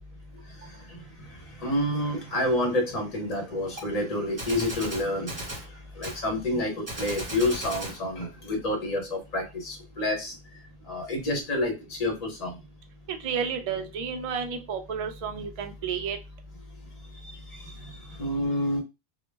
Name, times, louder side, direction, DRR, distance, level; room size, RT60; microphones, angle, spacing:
voice 1, 0.6-10.3 10.9-12.6 17.1-18.8, left 1 dB, 40° left, 3 dB, 0.8 m, -29 dB
Gunshot gunfire, 3.8-3.9 4.4-5.7 6.0-6.2 6.9-8.0, right 1 dB, 35° right, 1.1 m, -36 dB
voice 2, 13.1-16.2, right 6 dB, 55° right, 6 dB, 0.4 m, -31 dB
2.1 x 2.1 x 3.2 m, 0.25 s
omnidirectional pair, 1.1 m